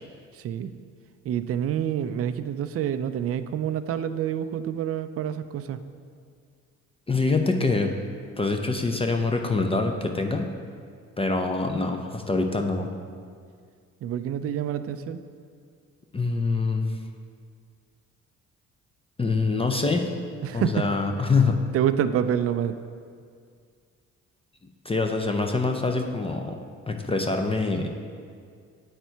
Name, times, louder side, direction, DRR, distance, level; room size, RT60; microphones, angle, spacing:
voice 1, 0.3-0.7 1.2-5.8 14.0-15.2 20.4-20.9 21.7-22.7, right 9 dB, 50° right, 11 dB, 0.4 m, -27 dB
voice 2, 7.1-7.9 8.4-10.5 11.2-12.9 16.1-16.9 19.2-20.1 20.5-21.6 24.8-26.6 26.9-27.9, left 3 dB, 20° left, 3 dB, 0.5 m, -25 dB
9.2 x 4.4 x 4.5 m, 2.1 s
cardioid pair, 90°, 30 cm